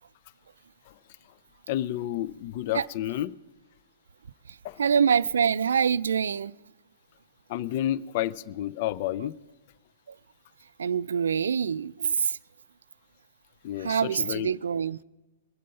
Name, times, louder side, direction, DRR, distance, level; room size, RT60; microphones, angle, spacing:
voice 1, 1.7-3.3 4.6-4.8 7.5-9.3 13.6-14.5, left 13 dB, 50° left, 0.4 m, -30 dB
voice 2, 4.8-6.5 10.8-12.4 13.8-15.0, right 7 dB, 75° right, 0.3 m, -25 dB
22.5 x 7.6 x 5.5 m
hypercardioid pair, 115°, 0 cm